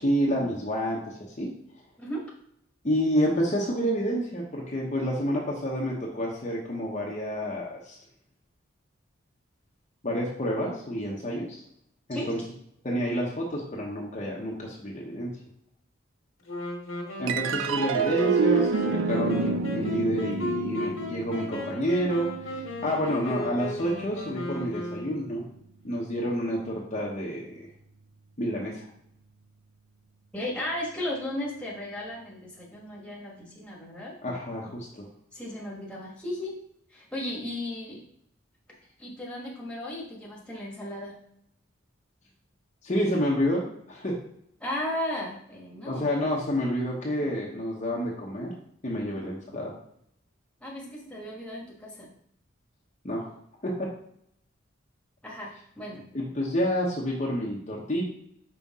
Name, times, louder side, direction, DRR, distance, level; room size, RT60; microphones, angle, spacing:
voice 1, 0.0-1.5 2.8-8.0 10.0-11.6 12.1-12.4 12.8-15.3 17.2-25.4 25.8-27.6 28.4-28.9 34.2-35.1 42.8-44.2 45.8-48.5 48.8-49.7 53.0-53.3 53.6-53.9 56.1-58.1, equal, 35° left, -3 dB, 0.9 m, -29 dB
Wind instrument woodwind instrument, 16.5-25.5, left 1 dB, 80° left, 1.5 m, -36 dB
sound 1, 17.3-23.9, right 4 dB, 70° right, 0.4 m, -28 dB
voice 2, 30.3-34.1 35.3-36.5 36.9-38.0 39.0-41.1 44.6-46.1 49.1-49.2 50.6-52.1 55.2-56.1, left 1 dB, 5° left, -4 dB, 1.4 m, -35 dB
5.5 x 4.9 x 3.6 m, 0.70 s
head